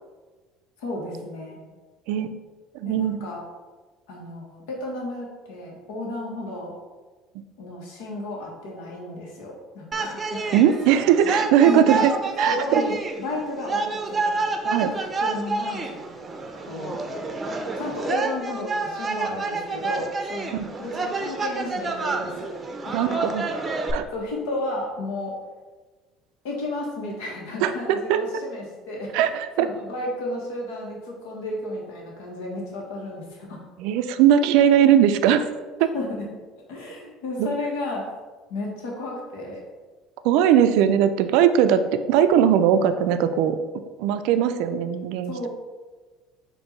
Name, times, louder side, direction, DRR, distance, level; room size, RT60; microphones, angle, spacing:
voice 1, 0.8-1.6 2.8-3.4 4.1-6.7 7.6-10.6 11.6-12.1 12.5-15.9 16.6-17.0 17.8-20.5 20.8-22.5 22.8-23.3 24.1-25.3 26.4-29.1 29.6-33.6 35.9-36.3 36.7-38.1 38.5-39.6 45.2-45.5, left 1 dB, 80° left, -2 dB, 1.3 m, -32 dB
voice 2, 2.7-3.3 10.5-12.1 12.4-12.8 14.7-14.9 22.9-23.4 23.7-24.1 27.6-28.2 29.1-29.7 33.8-35.5 35.8-35.9 37.4-37.5 40.2-43.6 44.0-45.5, right 9 dB, 75° right, 10 dB, 0.3 m, -19 dB
sound 1, 9.9-23.9, right 3 dB, 25° right, 0.6 m, -29 dB
4.5 x 2.6 x 4.3 m, 1.3 s
supercardioid pair, 85°, 0 cm